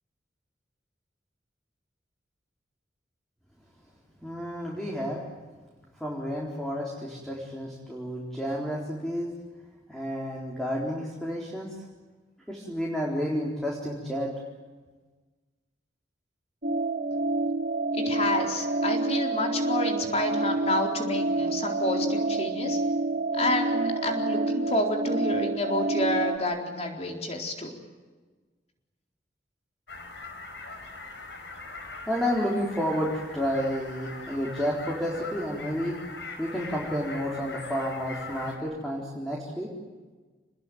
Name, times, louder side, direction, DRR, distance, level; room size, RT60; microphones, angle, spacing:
voice 1, 4.2-5.2 6.0-9.3 9.9-11.7 12.5-14.3 32.0-36.0 36.4-39.7, equal, 5° left, -3 dB, 4.0 m, -30 dB
sound 1, 16.6-26.4, right 2 dB, 50° right, 1.7 m, -28 dB
voice 2, 17.9-22.8 23.3-27.7, left 2 dB, 35° left, 2 dB, 4.2 m, -29 dB
sound 2, 29.9-38.6, left 3 dB, 85° left, 4.8 m, -41 dB
28.0 x 20.5 x 9.4 m, 1.3 s
head